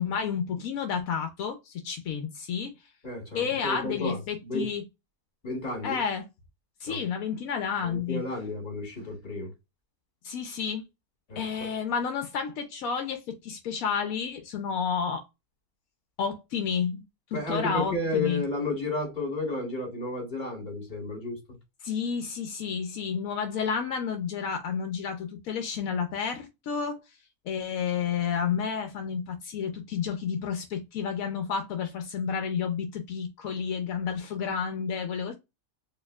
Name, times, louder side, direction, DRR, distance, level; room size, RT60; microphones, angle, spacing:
voice 1, 0.0-2.7 3.3-4.8 5.8-6.2 6.8-8.2 10.2-10.8 11.4-15.2 16.2-17.0 17.3-18.4 21.8-27.0 27.5-35.3, left 6 dB, 80° left, 1.1 m, -30 dB
voice 2, 3.0-4.7 5.4-6.0 6.9-7.0 7.8-9.5 11.3-11.7 17.3-21.4, left 2 dB, 35° left, 2.2 m, -32 dB
4.5 x 2.7 x 2.3 m
omnidirectional pair, 1.4 m